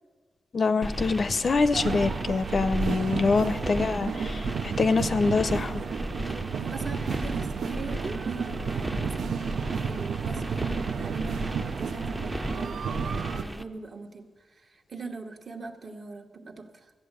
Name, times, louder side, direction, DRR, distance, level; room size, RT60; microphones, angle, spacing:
voice 1, 0.5-5.8, left 4 dB, 45° left, 13 dB, 0.5 m, -25 dB
sound 1, 0.8-13.6, right 1 dB, 10° right, 0.5 m, -35 dB
sound 2, 1.7-13.4, right 6 dB, 85° right, 0.5 m, -32 dB
voice 2, 2.7-3.5 6.2-9.5 9.9-16.9, right 3 dB, 50° right, 3 dB, 1.2 m, -41 dB
13.5 x 8.1 x 8.1 m, 1.5 s
wide cardioid pair, 110°, 0 cm